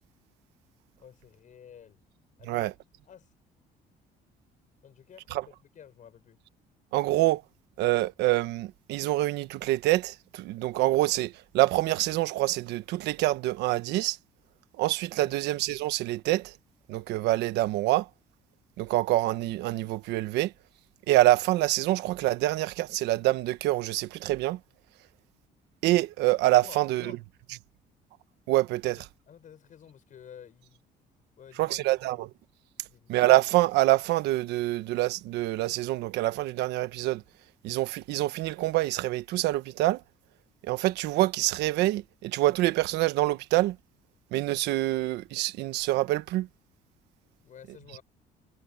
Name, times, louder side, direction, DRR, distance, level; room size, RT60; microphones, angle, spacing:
voice 1, 1.0-2.0 2.4-2.7 3.0-3.3 4.8-6.4 15.2-15.4 26.6-27.2 28.8-30.8 31.4-32.3 32.9-33.1 47.4-48.0, left 8 dB, 50° left, 7.1 m, -51 dB
voice 2, 6.9-7.4 7.8-14.2 14.8-16.5 16.9-18.1 18.8-20.5 21.1-24.6 25.8-27.1 28.5-29.0 31.6-32.3 33.1-37.2 37.6-40.0 40.6-43.8 44.3-46.5, right 17 dB, 90° right, 1.3 m, -26 dB
cardioid pair, 110°, 17 cm